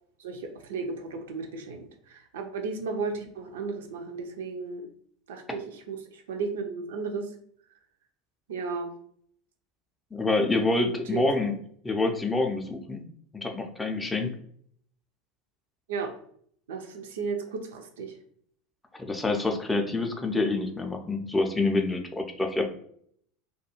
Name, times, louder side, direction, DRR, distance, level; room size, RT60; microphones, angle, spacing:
voice 1, 0.2-4.9 5.3-7.3 8.5-8.9 10.8-11.2 15.9-16.1 16.7-18.1, right 4 dB, 65° right, 4 dB, 0.4 m, -34 dB
voice 2, 10.1-11.6 11.8-13.0 13.3-14.3 19.0-22.7, left 3 dB, 10° left, 4 dB, 0.4 m, -27 dB
2.3 x 2.3 x 2.8 m, 0.63 s
figure-of-eight pair, 75°, 0 cm